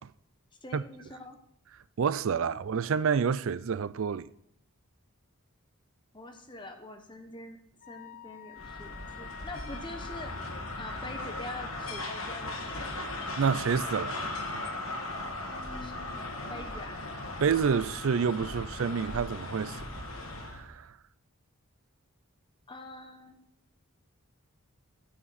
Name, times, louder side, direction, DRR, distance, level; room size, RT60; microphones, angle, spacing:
voice 1, 0.6-1.4 2.5-2.6 6.1-7.6 7.9-13.1 15.8-16.0 16.5-17.0 22.7-23.4, left 2 dB, 20° left, 1.0 m, -45 dB
voice 2, 2.0-4.3 13.4-14.2 17.4-19.8 20.5-20.9, right 6 dB, 60° right, 0.4 m, -28 dB
Wind instrument woodwind instrument, 7.8-12.8, left 8 dB, 40° left, 0.4 m, -49 dB
sound 1, 8.6-20.7, left 2 dB, 65° left, 1.7 m, -38 dB
14.0 x 5.8 x 4.1 m
head